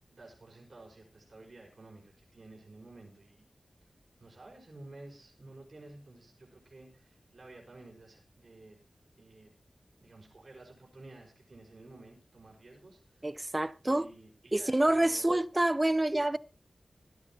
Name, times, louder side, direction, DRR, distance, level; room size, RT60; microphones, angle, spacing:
voice 1, 0.1-3.5 3.8-3.9 4.2-8.8 9.2-9.5 10.0-13.5 13.8-15.4, right 2 dB, 60° right, 5.2 m, -53 dB
voice 2, 13.2-14.1 14.5-16.4, right 1 dB, 20° right, 0.6 m, -27 dB
17.0 x 12.5 x 3.0 m
wide cardioid pair, 85°, 0 cm